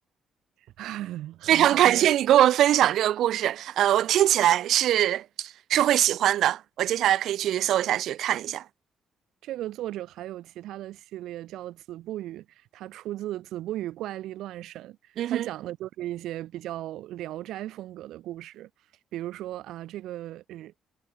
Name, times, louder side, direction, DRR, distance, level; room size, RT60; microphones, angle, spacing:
voice 1, 0.8-2.1 9.4-18.7 19.1-20.9, right 14 dB, 80° right, 2.5 m, -36 dB
voice 2, 1.5-8.6 15.2-15.5, right 12 dB, 65° right, 1.1 m, -22 dB
cardioid pair, 175°, 0 cm